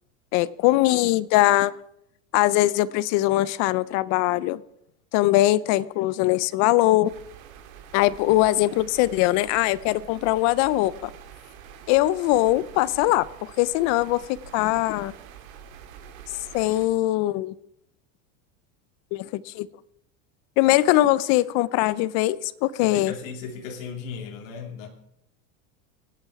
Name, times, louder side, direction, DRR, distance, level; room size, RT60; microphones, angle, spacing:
voice 1, 0.3-1.7 2.3-4.6 5.1-7.1 7.9-11.1 11.9-14.2 14.5-15.1 16.5-17.5 19.1-19.7 20.6-23.1, left 16 dB, 40° left, 20 dB, 0.5 m, -21 dB
sound 1, 7.0-16.9, right 8 dB, 85° right, 2.3 m, -46 dB
voice 2, 22.8-24.9, left 5 dB, 65° left, 2 dB, 2.7 m, -36 dB
24.0 x 9.1 x 4.7 m, 0.76 s
supercardioid pair, 150°, 41 cm